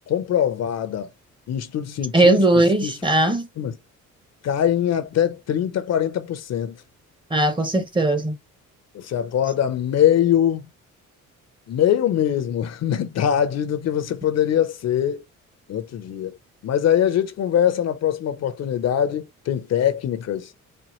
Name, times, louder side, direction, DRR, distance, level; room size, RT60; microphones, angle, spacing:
voice 1, 0.1-1.1 1.5-2.9 3.6-3.8 4.4-6.8 7.7-7.8 8.9-10.6 11.7-15.2 15.7-16.4 16.6-20.5, left 10 dB, 60° left, 0.6 m, -22 dB
voice 2, 2.1-3.5 7.3-8.4, right 2 dB, 15° right, 0.8 m, -18 dB
4.3 x 2.2 x 2.9 m
cardioid pair, 90°, 30 cm